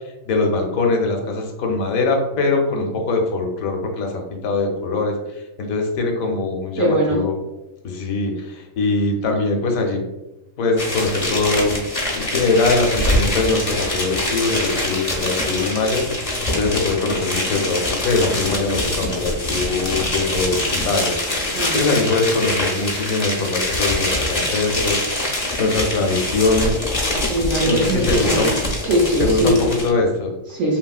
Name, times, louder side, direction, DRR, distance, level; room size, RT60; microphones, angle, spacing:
voice 1, 0.3-5.1 5.6-7.3 7.8-10.0 10.6-21.2 21.7-25.0 25.6-26.8 27.6-28.5 29.2-30.3, left 3 dB, 80° left, 3 dB, 1.0 m, -22 dB
voice 2, 6.8-7.2 21.5-21.8 27.3-28.5 28.8-29.6 30.5-30.8, right 1 dB, 70° right, -4 dB, 1.0 m, -20 dB
sound 1, 10.8-29.9, left 1 dB, 45° left, 0.4 m, -24 dB
2.9 x 2.7 x 2.3 m, 0.99 s
omnidirectional pair, 1.4 m